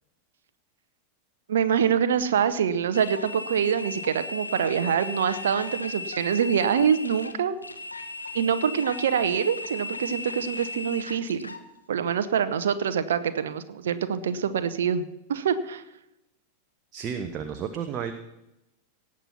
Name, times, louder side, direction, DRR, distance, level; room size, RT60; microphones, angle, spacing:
voice 1, 1.5-7.6 8.3-11.5 11.9-15.0 15.3-15.8, right 7 dB, 65° right, 11 dB, 0.8 m, -25 dB
sound 1, 2.9-11.6, left 3 dB, 80° left, 1.0 m, -37 dB
voice 2, 16.9-18.1, right 7 dB, 30° right, 6 dB, 1.0 m, -32 dB
18.0 x 7.6 x 5.8 m, 0.91 s
figure-of-eight pair, 90°, 0 cm